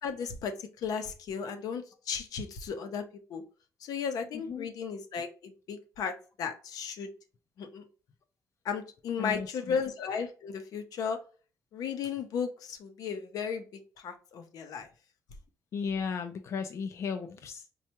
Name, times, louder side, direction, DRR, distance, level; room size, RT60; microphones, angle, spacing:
voice 1, 0.0-3.0 3.3-3.4 3.8-7.1 7.6-7.8 8.6-11.2 11.7-14.9, left 6 dB, 85° left, 6 dB, 0.7 m, -35 dB
voice 2, 4.3-4.7 9.2-9.8 15.7-17.7, left 5 dB, 50° left, 6 dB, 0.4 m, -35 dB
4.3 x 2.3 x 2.9 m, 0.36 s
cardioid pair, 150°, 6 cm